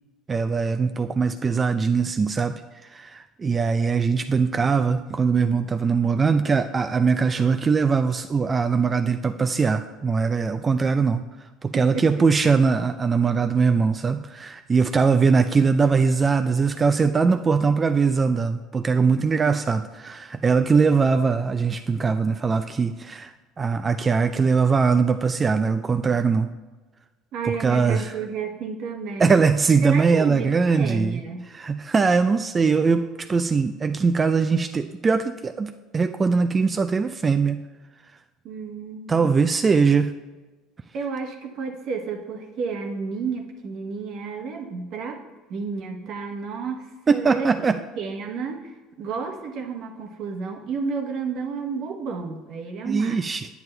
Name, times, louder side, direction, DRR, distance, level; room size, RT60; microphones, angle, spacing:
voice 1, 0.3-11.2 11.6-26.5 27.6-28.1 29.2-31.2 31.5-37.6 39.1-40.2 47.1-47.8 52.8-53.5, right 5 dB, 30° right, 9 dB, 0.3 m, -21 dB
voice 2, 11.7-12.1 19.4-19.6 27.3-29.4 29.8-31.5 38.4-39.2 40.9-45.2 45.5-47.7 48.0-53.4, right 5 dB, 60° right, 4 dB, 1.0 m, -31 dB
9.3 x 9.0 x 2.2 m, 1.2 s
hypercardioid pair, 70°, 0 cm